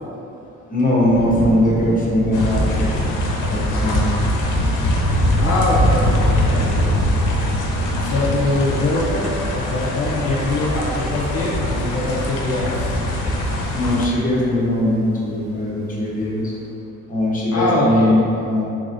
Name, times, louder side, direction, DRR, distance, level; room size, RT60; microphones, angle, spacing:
voice 1, 0.7-2.9 3.5-4.2 13.7-16.5 17.1-18.7, left 1 dB, 25° left, -5 dB, 1.0 m, -20 dB
Thunder / Rain, 1.0-16.6, equal, 35° right, 1.1 m, -35 dB
sound 1, 2.3-14.1, left 1 dB, 85° left, 0.6 m, -21 dB
voice 2, 5.4-7.2 8.0-13.0 17.5-18.2, left 2 dB, 55° left, -5 dB, 0.8 m, -23 dB
3.9 x 3.4 x 2.6 m, 2.7 s
cardioid pair, 90°, 30 cm